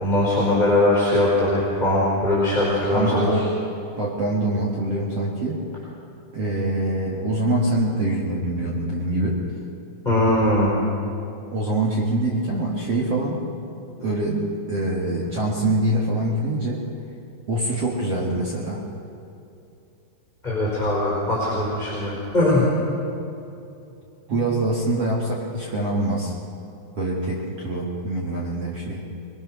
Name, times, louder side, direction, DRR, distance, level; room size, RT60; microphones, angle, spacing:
voice 1, 0.0-3.3 10.0-10.7 20.4-22.6, left 1 dB, 10° left, -6 dB, 4.0 m, -20 dB
voice 2, 2.9-3.5 4.0-5.6 6.3-9.4 11.5-13.5 14.0-16.8 17.5-18.8 24.3-26.3 27.0-29.0, right 1 dB, 55° right, -3 dB, 1.7 m, -24 dB
24.0 x 22.0 x 6.2 m, 2.7 s
omnidirectional pair, 5.4 m